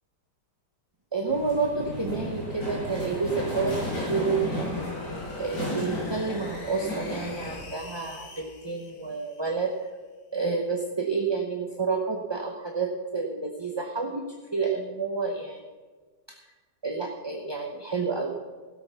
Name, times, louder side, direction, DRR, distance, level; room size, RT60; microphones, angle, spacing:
voice 1, 1.1-4.6 5.4-9.7 10.3-14.2 14.5-15.6 16.3-16.4 16.8-18.3, right 4 dB, 20° right, 1 dB, 0.9 m, -29 dB
sound 1, 1.2-7.6, left 1 dB, 80° left, 6.3 m, -33 dB
sound 2, 2.5-9.9, left 4 dB, 60° left, 1.9 m, -48 dB
16.0 x 8.6 x 5.8 m, 1.3 s
omnidirectional pair, 1.8 m